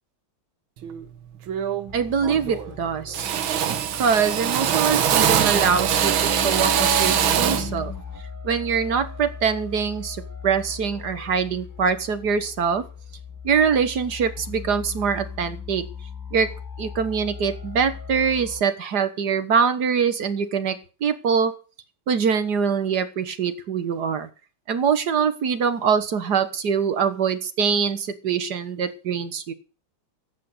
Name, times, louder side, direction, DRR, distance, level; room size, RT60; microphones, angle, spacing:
Drill, 0.8-1.1 1.5-2.8 3.1-7.7, right 9 dB, 85° right, 1.9 m, -22 dB
sound 1, 1.9-18.6, left 5 dB, 15° left, 0.8 m, -37 dB
voice 1, 1.9-3.3 3.6-7.9 8.4-10.2 10.4-12.8 13.4-15.8 16.3-16.5 16.8-21.5 22.1-24.3 24.7-29.5, right 6 dB, 60° right, 11 dB, 1.8 m, -23 dB
12.0 x 8.4 x 8.1 m, 0.36 s
omnidirectional pair, 2.1 m